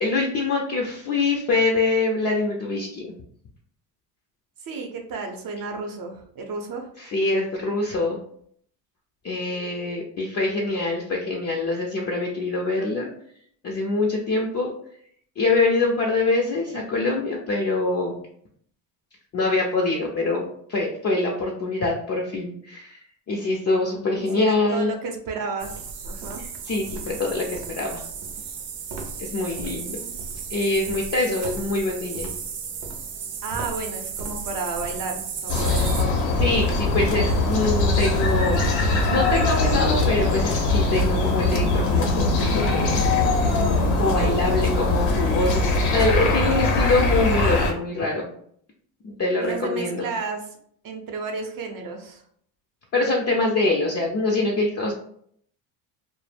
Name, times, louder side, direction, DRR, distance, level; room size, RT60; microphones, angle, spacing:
voice 1, 0.0-3.1 7.0-8.2 9.2-13.1 13.6-14.7 15.4-18.2 19.3-23.0 23.3-24.9 26.4-28.0 29.2-30.0 30.5-32.3 36.4-43.0 44.0-48.3 49.0-50.1 52.9-54.9, left 2 dB, 35° left, -1 dB, 0.5 m, -24 dB
voice 2, 4.6-6.9 24.2-26.4 29.7-30.2 33.4-36.3 49.4-50.4 50.8-52.2, right 4 dB, 45° right, 3 dB, 0.7 m, -32 dB
sound 1, 25.6-36.0, right 5 dB, 85° right, 0.6 m, -34 dB
sound 2, 35.5-47.7, left 2 dB, 85° left, 0.7 m, -21 dB
2.1 x 2.0 x 3.2 m, 0.64 s
supercardioid pair, 85°, 47 cm